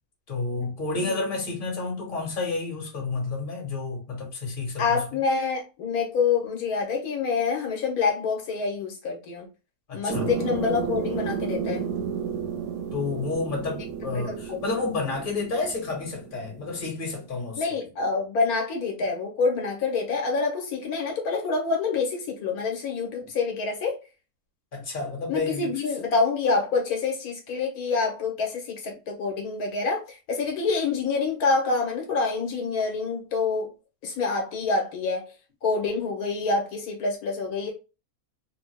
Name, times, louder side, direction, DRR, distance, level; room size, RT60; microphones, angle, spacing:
voice 1, 0.3-5.0 9.9-10.3 12.9-17.7 23.2-23.3 24.7-25.7, left 3 dB, 35° left, 1.4 m, -30 dB
voice 2, 0.9-1.3 4.8-9.5 9.9-11.8 14.1-14.6 17.6-24.0 25.3-33.7 34.0-35.2 35.6-37.7, left 4 dB, 80° left, 1.3 m, -27 dB
sound 1, 10.1-17.3, right 7 dB, 75° right, 1.0 m, -32 dB
3.4 x 2.1 x 3.2 m
omnidirectional pair, 1.6 m